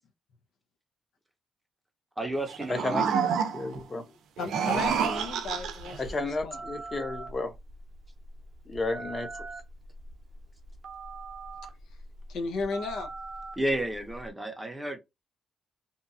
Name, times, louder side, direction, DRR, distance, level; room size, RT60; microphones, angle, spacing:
voice 1, 2.2-3.1 13.6-15.0, right 1 dB, 5° right, 0.6 m, -31 dB
sound 1, 2.5-3.8 4.4-6.0, right 7 dB, 90° right, 0.5 m, -28 dB
voice 2, 2.7-3.1 3.5-4.0 6.0-7.5 8.7-9.4, left 2 dB, 30° left, 0.7 m, -32 dB
voice 3, 4.4-6.6 12.3-13.1, left 4 dB, 80° left, 0.6 m, -34 dB
Telephone, 4.7-14.3, right 2 dB, 50° right, 0.7 m, -43 dB
2.8 x 2.3 x 2.6 m
cardioid pair, 130°, 0 cm